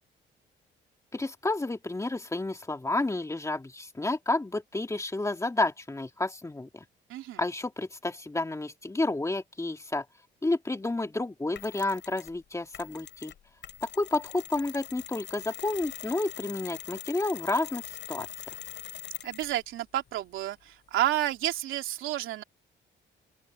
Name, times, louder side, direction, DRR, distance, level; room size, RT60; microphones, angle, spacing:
voice 1, 1.1-6.8 7.4-10.1 10.4-13.3 13.8-18.3, left 2 dB, 15° left, 2.7 m, -30 dB
Mechanisms, 11.6-12.4 12.7-19.6, left 10 dB, 65° left, 6.8 m, -43 dB
voice 2, 19.2-22.4, right 13 dB, 85° right, 2.9 m, -30 dB
open air
cardioid pair, 90°, 20 cm